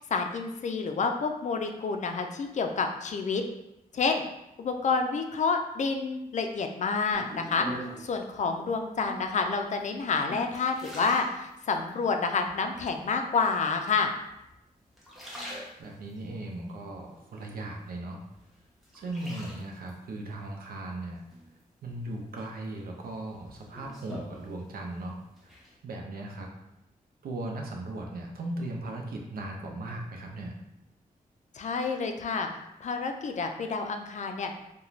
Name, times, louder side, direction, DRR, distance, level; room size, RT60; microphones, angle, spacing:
voice 1, 0.0-3.4 3.9-4.2 4.6-7.7 8.0-14.1 31.5-32.5 32.8-34.5, left 4 dB, 50° left, 5 dB, 0.4 m, -29 dB
sound 1, 7.1-8.2 9.0-9.5 10.0-12.0 12.5-13.1 13.9-14.5 14.9-16.2 16.7-17.9 18.3-19.9 21.3-21.9 22.4-25.0 25.2-25.7, equal, ahead, 0.8 m, -44 dB
voice 2, 15.8-18.2 18.9-21.2 21.8-25.6 25.8-26.5 27.2-30.5, right 2 dB, 80° right, 1 dB, 0.5 m, -38 dB
2.4 x 2.2 x 3.0 m, 0.87 s
cardioid pair, 70°, 15 cm